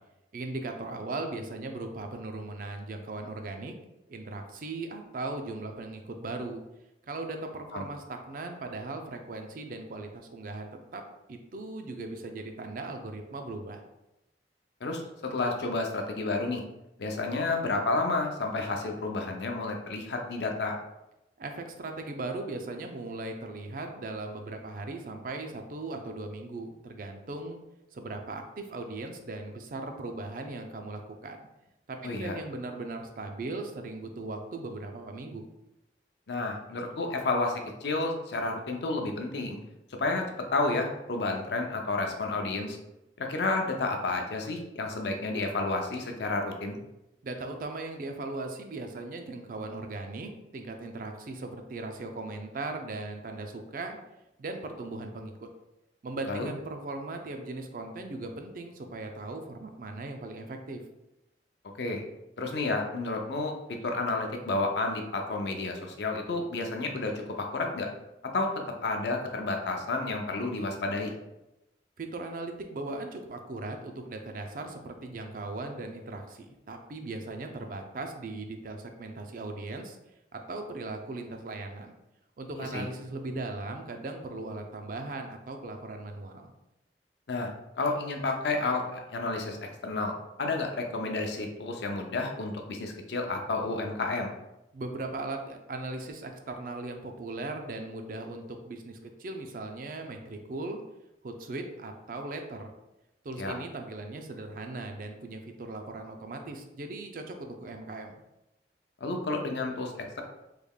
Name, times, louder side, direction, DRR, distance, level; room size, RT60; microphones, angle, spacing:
voice 1, 0.3-3.7 4.1-6.6 7.1-11.0 11.3-13.9 21.4-27.6 27.9-31.4 31.9-35.5 47.2-54.0 54.4-55.5 56.0-60.8 72.0-80.0 80.3-81.9 82.4-86.5 94.7-100.8 101.2-102.7 103.2-108.2, right 2 dB, 50° right, 5 dB, 0.4 m, -38 dB
voice 2, 14.8-16.6 17.0-20.7 32.0-32.4 36.3-39.6 40.0-40.2 40.5-42.8 43.2-46.8 56.3-56.5 61.8-62.0 62.4-63.5 63.8-67.9 68.3-68.5 68.8-71.1 82.6-82.9 87.3-87.5 87.8-94.3 103.4-103.5 109.0-110.2, left 3 dB, 75° left, 3 dB, 0.5 m, -31 dB
3.6 x 3.2 x 2.3 m, 0.92 s
head